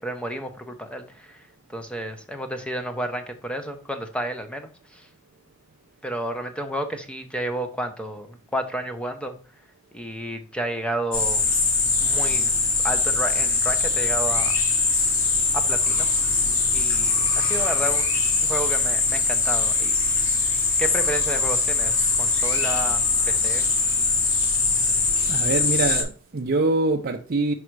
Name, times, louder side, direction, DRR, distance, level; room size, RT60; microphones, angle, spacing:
voice 1, 0.0-1.5 1.7-5.1 6.0-9.3 9.9-11.4 12.0-12.5 12.8-14.6 14.9-15.2 15.5-16.1 16.7-19.9 20.8-23.6, right 1 dB, 5° left, 0.8 m, -31 dB
sound 1, 11.1-26.0, left 4 dB, 70° left, 2.0 m, -22 dB
voice 2, 25.3-27.5, right 2 dB, 45° right, 0.5 m, -24 dB
5.4 x 5.0 x 4.6 m
head